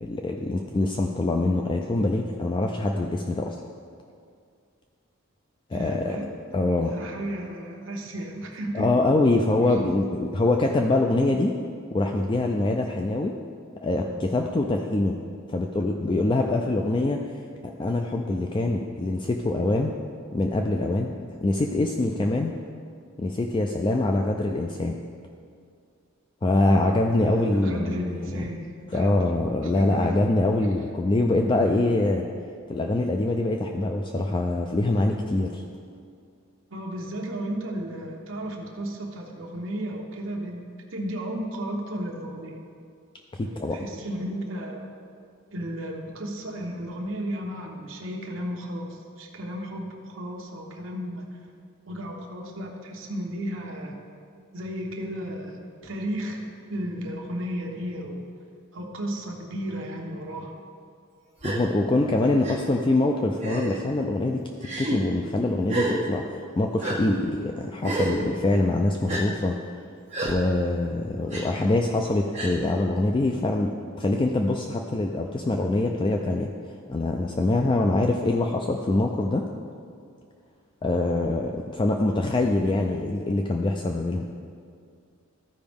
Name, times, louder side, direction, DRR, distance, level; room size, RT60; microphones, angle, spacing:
voice 1, 0.0-3.6 5.7-6.2 6.5-7.0 8.7-11.6 11.9-13.3 13.8-15.2 15.5-17.2 17.6-19.9 20.3-21.1 21.4-22.5 23.2-25.0 26.4-28.4 28.9-32.3 32.7-35.6 43.3-43.8 61.4-64.4 64.8-66.2 66.6-69.6 70.2-76.5 76.9-79.5 80.8-84.3, left 2 dB, 25° left, 2 dB, 0.3 m, -24 dB
voice 2, 5.7-6.3 6.9-8.9 9.7-9.8 26.6-29.2 29.6-30.3 36.7-40.6 40.9-42.6 43.4-44.9 45.5-51.4 51.8-54.0 54.5-58.2 58.7-60.6 62.5-62.8, right 1 dB, 65° right, 0 dB, 1.0 m, -34 dB
Gasp, 61.4-61.6 62.4-62.6 63.4-63.8 64.6-65.0 65.7-66.0 66.8-67.0 67.8-68.2 69.1-69.2 70.1-70.3 71.3-71.4 72.3-72.6, right 2 dB, 35° right, 1.5 m, -29 dB
13.5 x 5.1 x 3.5 m, 2.3 s
head